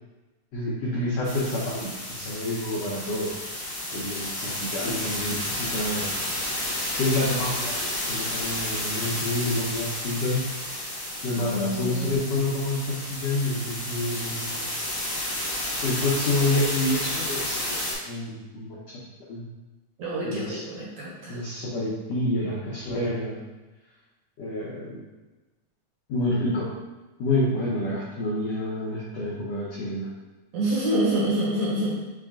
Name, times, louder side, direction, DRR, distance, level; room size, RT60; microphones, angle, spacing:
voice 1, 0.5-3.3 3.9-6.2 6.9-10.4 11.2-14.7 15.8-18.8 19.3-19.4 20.2-20.6 21.3-23.4 24.4-25.0 26.1-26.7 27.2-30.1, left 1 dB, 90° left, -6 dB, 1.4 m, -28 dB
sound 1, 1.2-17.9, left 1 dB, 60° left, 1.0 m, -31 dB
voice 2, 11.3-12.3 20.0-21.4 30.5-32.0, right 1 dB, 65° right, -6 dB, 2.0 m, -27 dB
5.9 x 2.3 x 3.6 m, 1.2 s
omnidirectional pair, 4.0 m